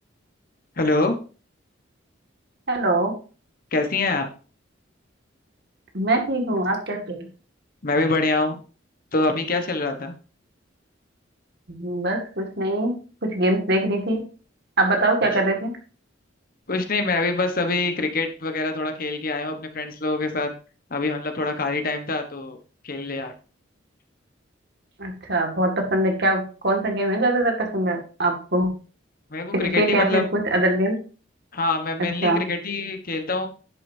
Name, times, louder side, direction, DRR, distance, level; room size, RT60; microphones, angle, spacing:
voice 1, 0.8-1.2 3.7-4.3 7.8-8.6 9.1-10.1 16.7-20.5 20.9-22.6 22.8-23.3 29.3-30.2 31.5-33.5, left 3 dB, 45° left, 6 dB, 1.2 m, -25 dB
voice 2, 2.7-3.1 5.9-7.2 11.7-12.9 13.3-14.2 14.8-15.7 25.0-28.7 29.5-31.0 32.2-32.5, right 1 dB, 55° right, 3 dB, 2.1 m, -22 dB
10.5 x 6.6 x 2.8 m, 0.37 s
head